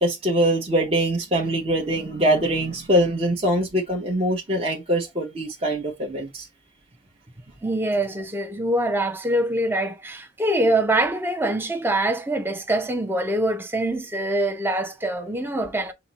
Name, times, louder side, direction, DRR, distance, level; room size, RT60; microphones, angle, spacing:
voice 1, 0.0-6.5, right 1 dB, 35° right, 0.8 m, -23 dB
voice 2, 7.6-15.9, right 1 dB, 10° right, 0.5 m, -24 dB
5.7 x 2.1 x 3.8 m
head